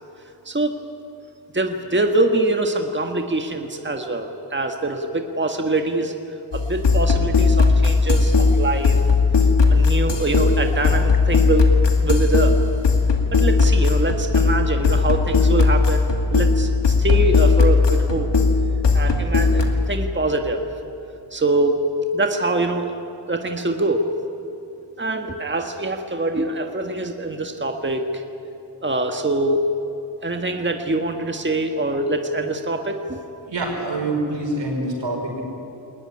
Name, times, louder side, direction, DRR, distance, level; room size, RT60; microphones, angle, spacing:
voice 1, 0.4-0.8 1.5-9.0 9.7-11.7 12.0-12.6 13.3-18.3 18.9-20.6 21.3-21.8 22.1-22.9 23.3-24.1 25.0-28.2 28.8-29.7 30.2-33.2, right 2 dB, 25° right, 4 dB, 1.7 m, -24 dB
sound 1, 6.5-19.8, left 4 dB, 75° left, 2.5 m, -17 dB
voice 2, 33.5-35.4, right 2 dB, 85° right, 1 dB, 5.7 m, -25 dB
21.0 x 19.5 x 9.9 m, 2.9 s
cardioid pair, 60°, 43 cm